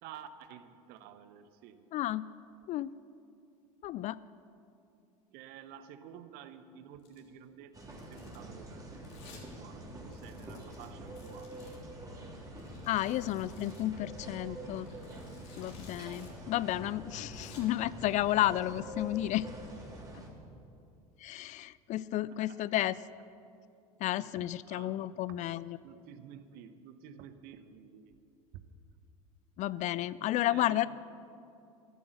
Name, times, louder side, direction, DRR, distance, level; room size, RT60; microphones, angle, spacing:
voice 1, 0.0-1.8 5.3-8.8 9.2-11.5 13.6-15.1 22.1-22.6 24.7-25.4 25.8-28.2 28.5-28.6 30.4-30.9, right 9 dB, 55° right, 10 dB, 1.1 m, -51 dB
voice 2, 1.9-2.3 2.7-2.9 3.8-4.2 12.9-14.9 15.6-19.5 21.2-23.0 24.0-25.8 29.6-30.9, left 14 dB, 40° left, 19 dB, 0.4 m, -32 dB
Domestic sounds home sounds, 7.0-7.3 7.8-8.4 9.0-9.5 9.7-9.8 10.1-11.8 12.6-13.9 14.7-16.3 16.6-16.7 17.1-17.6, left 5 dB, 60° left, 3.1 m, -56 dB
sound 1, 7.7-20.3, right 1 dB, 20° right, 3.4 m, -46 dB
14.0 x 11.5 x 6.4 m, 2.6 s
hypercardioid pair, 75°, 19 cm